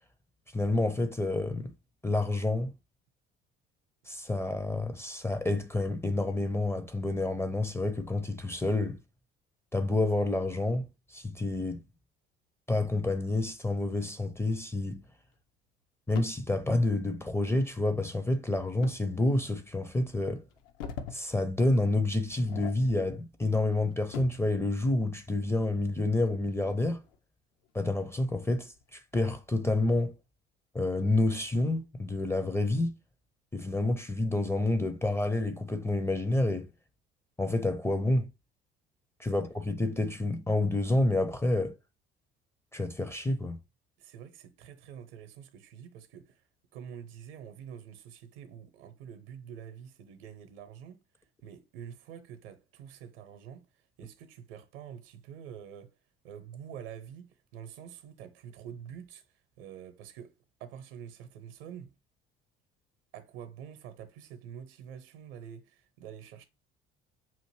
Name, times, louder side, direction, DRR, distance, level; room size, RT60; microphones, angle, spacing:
voice 1, 0.5-1.7 2.0-2.7 4.1-9.0 9.7-10.8 11.1-11.8 12.7-15.0 16.1-20.4 21.1-27.0 27.7-30.1 30.7-32.9 33.5-36.7 37.4-38.3 39.2-41.8 42.7-43.6, left 2 dB, 10° left, 0.5 m, -29 dB
sound 1, 16.1-16.5 18.8-19.0 19.6-19.7 20.5-21.2 21.6-21.8 22.3-23.2 23.6-24.5 26.0-27.2 27.6-27.7 28.4-28.8, left 6 dB, 60° left, 0.6 m, -43 dB
voice 2, 44.0-46.4 46.7-51.0 51.4-53.7 54.0-55.9 56.2-59.2 59.6-60.3 60.6-61.9 63.1-66.4, right 8 dB, 65° right, 0.8 m, -46 dB
5.6 x 2.6 x 3.0 m
figure-of-eight pair, 55°, 31 cm